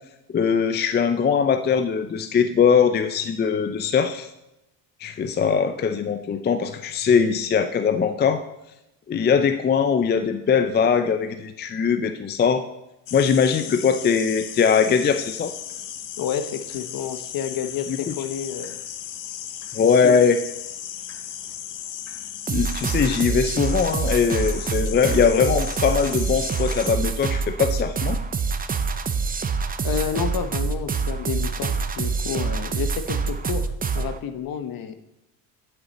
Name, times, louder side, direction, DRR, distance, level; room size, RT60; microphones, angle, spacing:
voice 1, 0.3-4.3 5.0-8.4 9.1-12.6 13.1-15.5 17.9-18.1 19.7-20.4 22.5-28.2, left 6 dB, 25° left, 9 dB, 0.5 m, -21 dB
sound 1, 13.1-26.9, left 10 dB, 75° left, 1.0 m, -36 dB
voice 2, 16.2-18.8 19.8-20.2 29.8-33.7 33.9-35.0, left 8 dB, 50° left, 9 dB, 1.1 m, -30 dB
sound 2, 22.5-34.2, right 5 dB, 20° right, 0.6 m, -26 dB
11.0 x 6.7 x 4.2 m, 0.88 s
cardioid pair, 110°, 44 cm